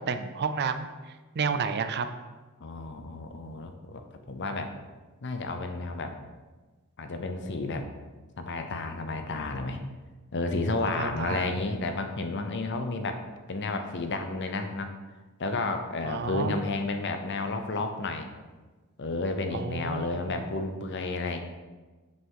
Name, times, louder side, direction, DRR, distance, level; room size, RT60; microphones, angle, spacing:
voice 1, 0.1-0.9 1.3-2.1 3.5-3.6 11.0-11.5 16.0-16.6 19.5-20.4, right 5 dB, 50° right, 10 dB, 0.5 m, -31 dB
voice 2, 2.6-4.7 5.2-6.2 7.0-7.9 8.4-9.8 10.3-14.9 15.4-18.3 19.0-21.4, left 3 dB, 55° left, 6 dB, 0.7 m, -31 dB
6.4 x 5.5 x 4.7 m, 1.3 s
head